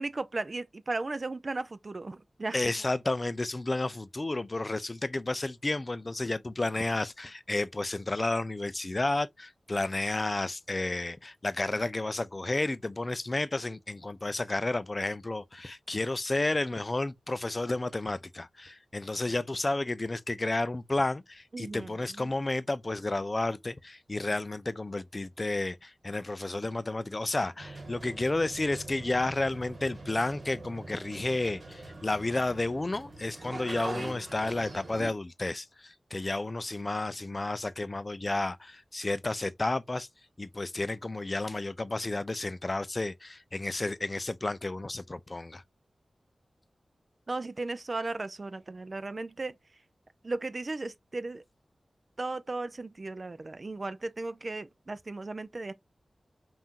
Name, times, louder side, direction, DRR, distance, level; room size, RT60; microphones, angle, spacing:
voice 1, 0.0-2.6 21.5-22.3 47.3-49.6 50.2-51.4 52.2-55.7, right 3 dB, 45° right, 0.5 m, -36 dB
voice 2, 2.5-40.1 40.4-45.6, left 2 dB, 35° left, 0.4 m, -31 dB
sound 1, 27.6-35.1, right 2 dB, 60° right, 1.9 m, -43 dB
5.5 x 2.5 x 2.8 m
wide cardioid pair, 80°, 0 cm